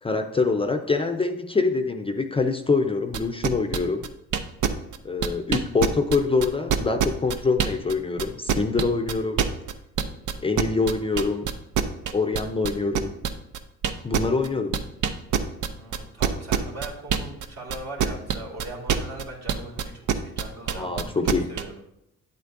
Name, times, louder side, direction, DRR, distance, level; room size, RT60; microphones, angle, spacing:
voice 1, 0.0-4.1 5.0-9.5 10.4-11.5 12.1-13.1 14.0-14.8 20.7-21.5, left 4 dB, 20° left, 7 dB, 0.5 m, -25 dB
sound 1, 3.1-7.9 8.2-17.4 17.7-21.6, right 8 dB, 80° right, 0.6 m, -24 dB
voice 2, 15.6-21.2 21.5-21.7, right 2 dB, 60° right, -1 dB, 2.3 m, -40 dB
8.8 x 8.0 x 2.5 m, 0.80 s
cardioid pair, 90°, 30 cm